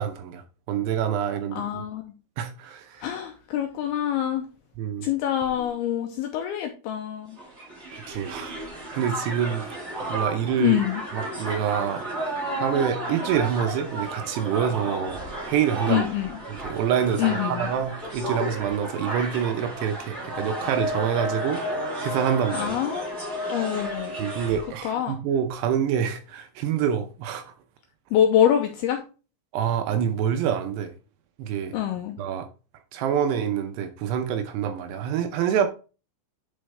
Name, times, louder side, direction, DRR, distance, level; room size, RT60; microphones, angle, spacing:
voice 1, 0.0-1.8 2.4-3.1 4.8-5.1 7.9-8.6 8.9-9.7 10.1-10.8 11.1-12.1 12.6-15.2 15.5-16.0 16.6-21.6 22.0-22.7 24.2-27.4 29.5-30.9 31.4-31.8 32.2-32.5 32.9-35.7, right 8 dB, 80° right, 2.7 m, -26 dB
voice 2, 1.5-2.1 3.0-4.5 5.0-7.4 10.6-11.0 15.9-16.3 17.2-17.7 22.5-23.0 23.5-24.2 24.8-25.2 28.1-29.0 31.7-32.2, left 10 dB, 80° left, 2.3 m, -25 dB
Crowd, 7.4-24.7, right 1 dB, 35° right, 1.1 m, -32 dB
10.0 x 4.5 x 3.3 m
omnidirectional pair, 5.2 m